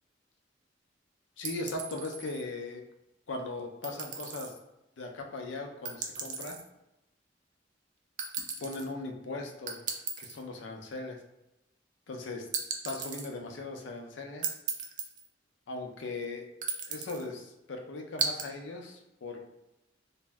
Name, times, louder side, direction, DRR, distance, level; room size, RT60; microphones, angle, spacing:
voice 1, 1.4-2.8 3.3-4.5 5.0-6.6 8.6-9.8 10.2-11.2 12.1-12.5 12.8-14.5 15.7-16.5 16.9-19.5, left 2 dB, 80° left, 2 dB, 0.5 m, -39 dB
sound 1, 1.4-2.4 3.8-4.5 5.8-6.6 8.2-8.9 9.7-10.4 12.5-13.3 14.4-15.3 16.6-17.2 18.2-18.5, right 6 dB, 45° right, 0.4 m, -35 dB
2.6 x 2.1 x 3.3 m, 0.92 s
head